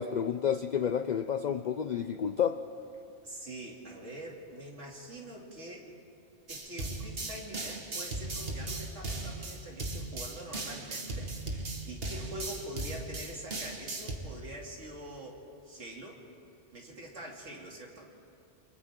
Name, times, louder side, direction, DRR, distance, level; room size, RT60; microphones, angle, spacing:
voice 1, 0.0-2.6, left 8 dB, 50° left, 10 dB, 0.5 m, -30 dB
voice 2, 3.2-5.9 6.5-16.2 16.7-18.1, right 1 dB, 75° right, -2 dB, 3.1 m, -45 dB
sound 1, 6.5-14.2, right 2 dB, 55° right, 1.9 m, -37 dB
29.5 x 24.5 x 3.8 m, 2.5 s
omnidirectional pair, 1.2 m